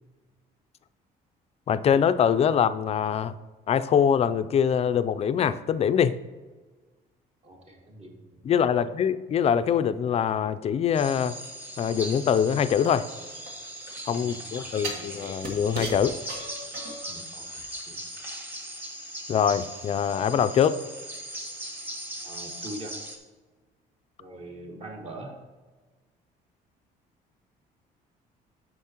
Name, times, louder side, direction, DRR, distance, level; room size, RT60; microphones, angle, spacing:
voice 1, 1.7-3.3 3.7-6.1 8.4-11.3 11.8-13.1 14.1-16.2 19.3-20.8, left 8 dB, 40° left, 13 dB, 0.4 m, -23 dB
voice 2, 7.4-8.4 8.7-8.9 14.2-15.1 16.0-16.2 17.1-17.4 17.9-18.0 22.2-23.0 24.2-25.3, right 1 dB, 35° right, 1 dB, 1.7 m, -43 dB
sound 1, 10.9-23.2, right 1 dB, 10° right, 1.2 m, -39 dB
sound 2, 12.8-14.0 14.8-17.2 17.6-17.7, right 2 dB, 70° right, 1.5 m, -37 dB
8.3 x 6.5 x 2.9 m, 1.3 s
cardioid pair, 110°, 17 cm